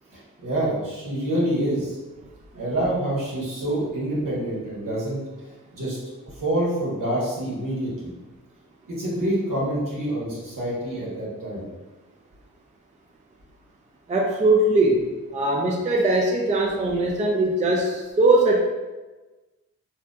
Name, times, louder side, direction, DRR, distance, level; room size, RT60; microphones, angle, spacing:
voice 1, 0.1-2.0 2.5-5.2 5.7-6.0 6.3-8.1 8.9-11.7, right 1 dB, 65° right, -6 dB, 1.1 m, -27 dB
voice 2, 14.1-18.6, right 2 dB, 20° right, 0 dB, 0.3 m, -21 dB
2.7 x 2.2 x 2.2 m, 1.2 s
cardioid pair, 45°, 35 cm